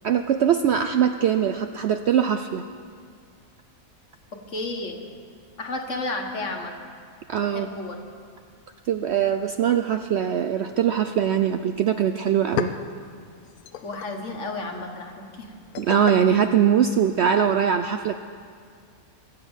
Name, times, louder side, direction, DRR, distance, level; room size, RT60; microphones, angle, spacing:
voice 1, 0.0-2.6 7.3-7.7 8.9-12.7 15.8-18.2, right 8 dB, 65° right, 8 dB, 0.7 m, -22 dB
voice 2, 4.3-5.0 5.6-6.7 7.4-8.0 13.8-15.5, left 2 dB, 55° left, 3 dB, 1.8 m, -32 dB
sound 1, 12.4-17.4, left 9 dB, 85° left, 1.2 m, -36 dB
23.0 x 8.2 x 7.2 m, 2.1 s
omnidirectional pair, 1.5 m